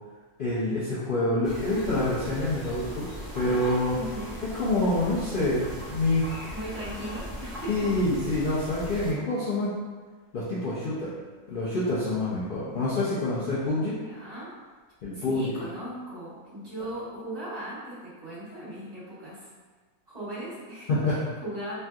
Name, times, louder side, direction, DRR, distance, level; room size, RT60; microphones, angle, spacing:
voice 1, 0.4-3.1 3.3-4.0 4.6-6.5 7.7-9.8 10.3-11.1 11.5-14.0 15.0-15.6 20.9-21.2, left 2 dB, 75° left, -9 dB, 0.5 m, -27 dB
sound 1, 1.4-9.1, equal, ahead, 0.7 m, -39 dB
voice 2, 3.9-4.4 6.5-7.9 13.9-14.5 15.1-19.5 20.1-21.7, right 1 dB, 25° right, -13 dB, 1.5 m, -38 dB
3.2 x 2.6 x 2.3 m, 1.4 s
omnidirectional pair, 1.6 m